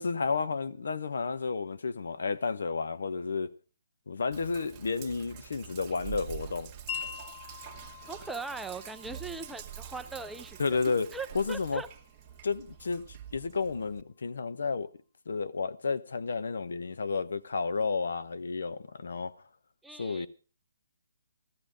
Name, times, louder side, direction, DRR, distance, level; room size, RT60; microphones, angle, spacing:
voice 1, 0.0-3.5 4.1-6.7 10.6-11.1 11.3-11.8 12.4-14.9 15.3-19.3 20.0-20.3, left 4 dB, 70° left, 0.9 m, -31 dB
Sink (filling or washing), 4.3-14.0, right 10 dB, 25° right, 1.4 m, -46 dB
Wind chime, 6.9-13.0, left 8 dB, 30° left, 0.9 m, -45 dB
voice 2, 8.1-11.9 19.8-20.3, right 3 dB, 5° right, 0.6 m, -40 dB
14.5 x 14.0 x 5.1 m
hypercardioid pair, 150°, 0 cm